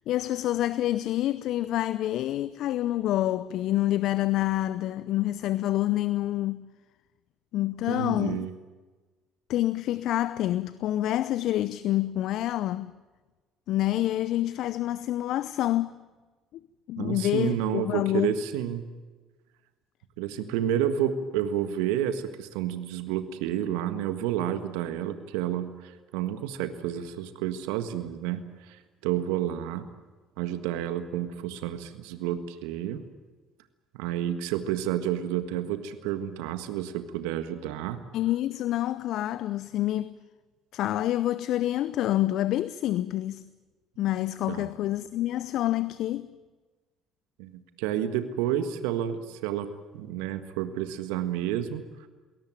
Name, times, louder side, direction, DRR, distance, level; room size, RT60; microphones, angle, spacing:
voice 1, 0.1-6.6 7.5-8.5 9.5-12.9 13.7-16.0 16.9-18.3 38.1-40.1 40.7-43.4 44.0-46.3, left 14 dB, 65° left, 0.6 m, -27 dB
voice 2, 7.9-8.5 17.0-18.9 20.2-29.8 30.4-33.0 33.9-38.0 44.5-44.7 47.4-49.7 49.9-51.8, right 10 dB, 75° right, 1.6 m, -30 dB
22.0 x 18.0 x 9.1 m
hypercardioid pair, 60°, 0 cm